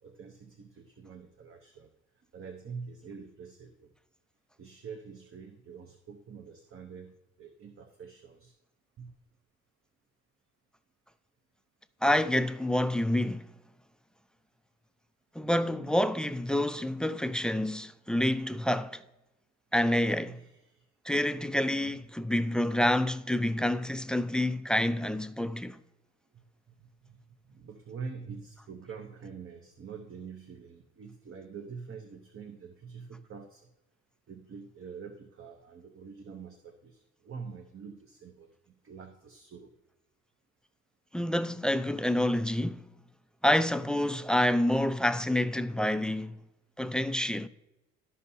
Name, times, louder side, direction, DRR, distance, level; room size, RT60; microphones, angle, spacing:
voice 1, 0.0-3.9 4.6-8.5 9.0-9.1 20.3-20.9 21.9-22.0 26.3-33.7 34.3-39.7, right 5 dB, 45° right, 0.8 m, -46 dB
voice 2, 12.0-13.5 15.4-19.0 19.7-20.4 21.1-25.8 41.1-42.8 43.4-46.4 46.8-47.5, left 1 dB, 5° left, 0.3 m, -28 dB
13.0 x 5.5 x 2.7 m
cardioid pair, 90°, 30 cm